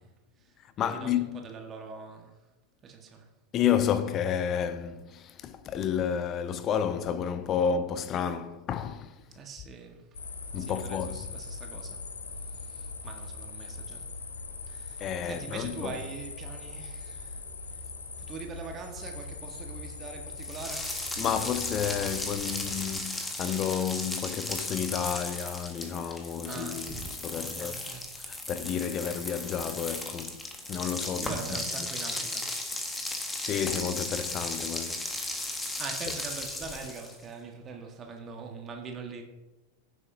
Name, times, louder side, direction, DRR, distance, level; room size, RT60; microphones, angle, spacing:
voice 1, 0.6-1.5 3.5-9.4 10.5-11.3 15.0-16.0 21.2-27.8 28.1-30.4 30.7-31.9 32.8-33.1 33.4-35.2 36.1-36.2, left 8 dB, 30° left, 0.7 m, -31 dB
voice 2, 1.4-2.3 2.8-3.3 9.3-10.0 10.6-12.0 12.6-14.0 14.7-17.4 18.2-21.1 26.4-27.0 27.3-28.0 31.2-32.6 35.8-39.2, right 5 dB, 25° right, 1.5 m, -42 dB
Jogger gravel running sport suburban park crickets, 10.1-23.0, left 4 dB, 70° left, 1.3 m, -41 dB
sound 1, 20.4-37.2, left 2 dB, 10° left, 1.6 m, -36 dB
16.0 x 7.9 x 2.8 m
figure-of-eight pair, 90°, 0 cm